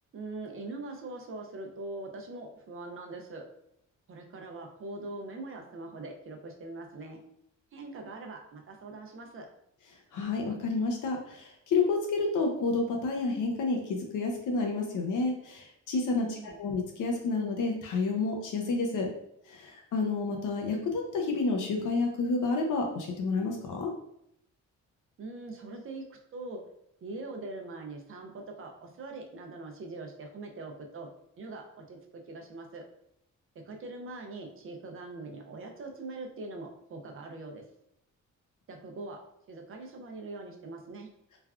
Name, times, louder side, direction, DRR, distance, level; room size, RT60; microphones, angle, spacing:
voice 1, 0.1-3.4 4.1-7.2 7.7-9.5 16.2-16.6 25.2-26.6 27.0-31.1 31.4-32.0 32.3-32.8 33.7-37.6 38.7-39.2 39.5-41.1, right 2 dB, 45° right, 3 dB, 0.4 m, -42 dB
voice 2, 10.1-19.1 19.5-23.9, left 3 dB, 80° left, 2 dB, 0.6 m, -30 dB
3.2 x 2.3 x 2.3 m, 0.75 s
wide cardioid pair, 170°, 31 cm